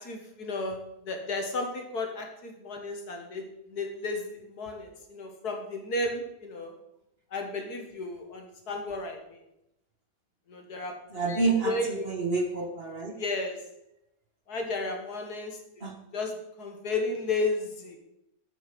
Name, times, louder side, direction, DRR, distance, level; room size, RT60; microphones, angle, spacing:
voice 1, 0.0-3.4 3.7-6.7 7.3-9.4 10.5-10.9 11.3-12.1 13.2-13.6 14.5-15.9 16.1-18.0, left 2 dB, 65° left, 3 dB, 2.1 m, -33 dB
voice 2, 11.1-13.1 15.8-15.9, right 3 dB, 35° right, 2 dB, 1.6 m, -28 dB
9.2 x 8.0 x 5.3 m, 0.84 s
omnidirectional pair, 1.8 m